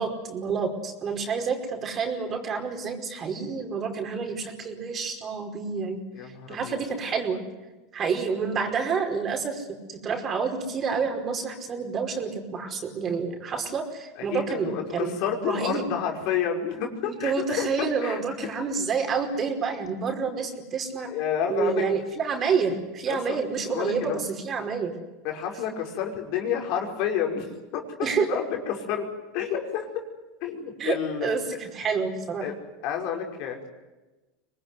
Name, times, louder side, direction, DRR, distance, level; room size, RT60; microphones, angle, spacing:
voice 1, 0.0-7.4 7.9-15.1 15.4-15.9 17.0-21.1 21.5-24.9 28.0-28.3 30.8-30.9 31.2-32.4, right 5 dB, 35° right, 4 dB, 5.1 m, -28 dB
voice 2, 6.1-6.8 14.2-18.2 21.0-21.8 23.1-23.4 23.7-24.2 25.2-27.9 28.3-29.1 29.3-29.9 30.4-31.3 32.4-32.5 32.8-33.7, left 8 dB, 60° left, 3 dB, 5.4 m, -30 dB
25.0 x 19.5 x 9.8 m, 1.1 s
supercardioid pair, 105°, 0 cm